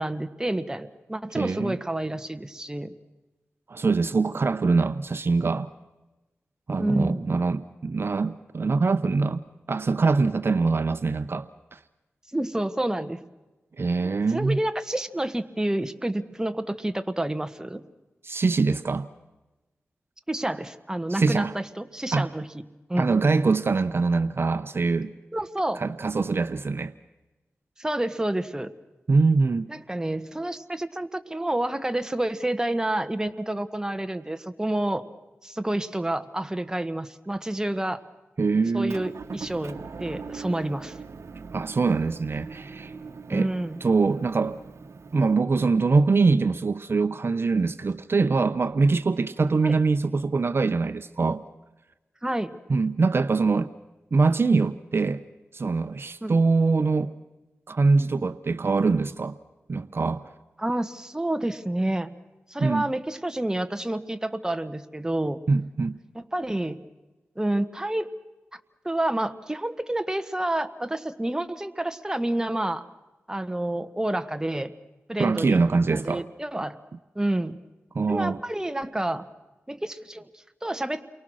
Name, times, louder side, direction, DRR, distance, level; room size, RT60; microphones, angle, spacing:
voice 1, 0.0-2.9 6.8-7.2 12.3-13.2 14.0-17.8 20.3-22.5 22.9-23.1 25.3-25.8 27.8-28.7 29.7-35.0 35.4-38.0 38.7-41.0 43.3-43.8 49.6-49.8 52.2-52.5 56.2-56.3 60.6-62.1 62.5-65.4 66.1-66.8 67.3-68.1 68.5-72.8 73.3-74.7 75.1-75.6 75.9-76.8 77.1-77.6 78.1-79.2 79.7-81.0, right 1 dB, 15° right, 9 dB, 1.4 m, -29 dB
voice 2, 1.3-1.8 3.7-5.7 6.7-9.4 9.7-11.8 13.8-14.6 18.2-19.1 21.1-21.5 22.1-22.3 23.0-25.1 25.8-26.9 29.1-29.7 38.4-39.0 41.5-42.9 43.3-43.5 43.8-44.6 45.1-51.4 52.7-53.7 54.1-55.2 55.5-57.1 57.7-59.4 59.7-60.3 62.6-62.9 65.5-66.0 75.2-76.2 77.9-78.4, right 4 dB, 55° right, 12 dB, 0.8 m, -23 dB
Motor vehicle (road) / Engine, 38.9-45.3, right 4 dB, 75° right, 1.1 m, -41 dB
29.5 x 23.5 x 6.4 m, 1.1 s
wide cardioid pair, 75°, 5 cm